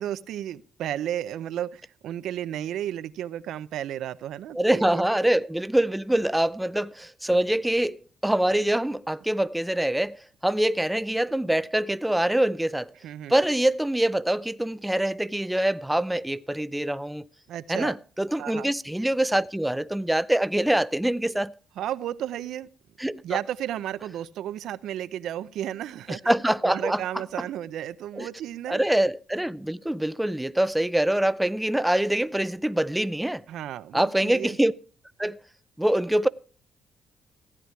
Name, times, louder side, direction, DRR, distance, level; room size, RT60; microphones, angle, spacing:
voice 1, 0.0-5.0 13.0-13.3 17.5-17.9 18.4-18.7 21.8-22.7 23.2-26.3 26.6-28.8 33.5-34.6, right 11 dB, 80° right, 0.6 m, -33 dB
voice 2, 4.5-12.9 13.3-17.3 17.7-21.5 23.0-23.2 26.1-27.0 28.1-28.3 28.7-33.4 33.9-34.7 35.2-35.4 35.8-36.3, right 1 dB, 5° right, 0.5 m, -24 dB
15.0 x 9.8 x 4.6 m
cardioid pair, 90°, 0 cm